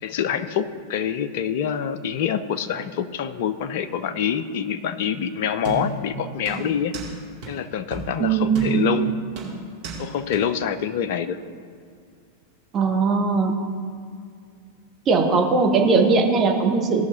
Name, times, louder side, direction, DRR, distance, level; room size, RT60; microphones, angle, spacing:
voice 1, 0.0-6.9 7.5-9.1 10.0-11.4, left 8 dB, 50° left, 12 dB, 0.5 m, -26 dB
sound 1, 5.6-6.1 6.5-7.1 7.4-7.5 7.9-8.1 8.5-9.0 9.4-10.0 10.3-10.4, right 2 dB, 45° right, 2.4 m, -32 dB
voice 2, 8.2-8.9 12.7-13.6 15.1-17.1, right 4 dB, 30° right, 1 dB, 1.3 m, -19 dB
17.0 x 5.7 x 3.9 m, 2.2 s
figure-of-eight pair, 90°, 0 cm